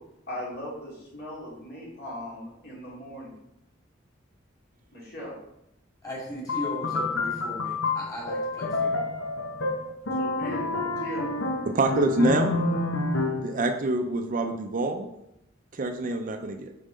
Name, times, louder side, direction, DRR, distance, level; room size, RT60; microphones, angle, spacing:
voice 1, 0.3-3.3 4.9-5.3 10.1-10.6 11.0-11.3, equal, 55° left, -5 dB, 2.6 m, -38 dB
voice 2, 6.0-9.0, equal, 20° left, -4 dB, 2.1 m, -37 dB
sound 1, 6.5-13.6, left 3 dB, 80° left, 0.9 m, -28 dB
voice 3, 11.7-12.6 13.4-15.1 15.7-16.7, right 2 dB, 45° right, 6 dB, 0.5 m, -26 dB
5.4 x 4.2 x 5.0 m, 0.83 s
head